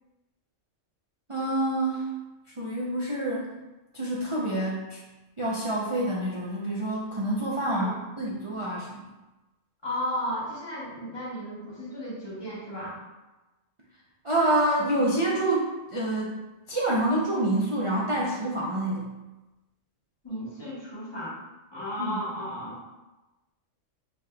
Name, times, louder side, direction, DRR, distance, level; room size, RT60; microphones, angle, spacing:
voice 1, 1.3-2.1 2.6-3.5 3.9-5.0 5.4-9.0 14.2-16.4 16.7-19.2 22.0-22.2, right 1 dB, 45° right, -6 dB, 0.4 m, -27 dB
voice 2, 9.8-13.0 20.2-21.4 21.7-22.8, equal, 20° left, -7 dB, 1.2 m, -34 dB
4.9 x 3.7 x 2.2 m, 1.1 s
omnidirectional pair, 1.3 m